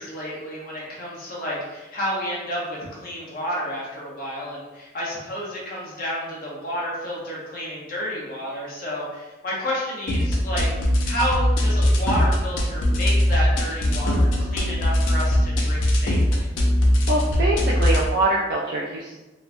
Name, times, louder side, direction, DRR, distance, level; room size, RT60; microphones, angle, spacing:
voice 1, 0.0-10.7 11.0-16.4, equal, 50° left, -6 dB, 0.8 m, -30 dB
sound 1, 10.1-18.1, left 1 dB, 80° left, 0.5 m, -21 dB
voice 2, 17.1-19.3, right 2 dB, 55° right, -4 dB, 0.3 m, -24 dB
3.0 x 2.1 x 2.5 m, 1.1 s
head